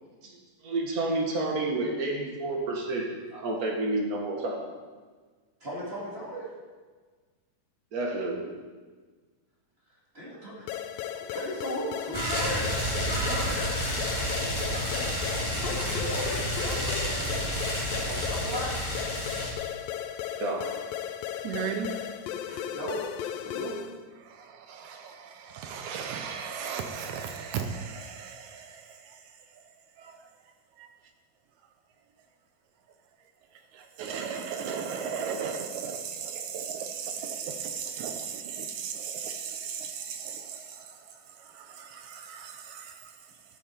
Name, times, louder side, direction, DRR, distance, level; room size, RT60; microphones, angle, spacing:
voice 1, 0.6-4.6 7.9-8.4 20.4-20.7, right 2 dB, 55° right, 1.0 m, -30 dB
voice 2, 5.6-6.5 10.1-10.7 11.3-12.7 13.0-13.6 14.3-15.2 15.5-17.4 17.9-18.7 22.5-23.0 23.3-23.8, equal, 25° right, 1.6 m, -37 dB
sound 1, 10.7-24.0, left 10 dB, 85° left, 2.3 m, -36 dB
sound 2, 12.1-19.5, equal, 10° left, 1.9 m, -30 dB
voice 3, 21.4-21.9 22.5-22.7 24.2-29.6 30.0-30.3 30.8-30.9 33.5-43.4, right 7 dB, 75° right, 1.9 m, -37 dB
13.0 x 8.7 x 4.3 m
omnidirectional pair, 4.0 m